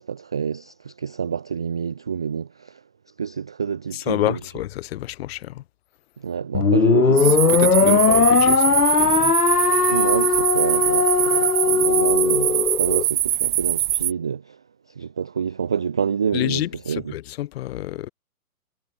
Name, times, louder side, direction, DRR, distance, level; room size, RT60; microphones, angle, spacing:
voice 1, 0.0-2.8 3.2-4.4 6.2-8.0 9.9-14.6 15.0-17.1, right 7 dB, 5° right, 0.4 m, -28 dB
voice 2, 3.9-5.6 7.2-9.3 16.3-18.1, left 14 dB, 40° left, 4.4 m, -29 dB
sound 1, 6.5-13.0, left 5 dB, 80° left, 4.5 m, -19 dB
sound 2, 7.2-14.1, right 12 dB, 35° right, 0.7 m, -23 dB
figure-of-eight pair, 130°, 45 cm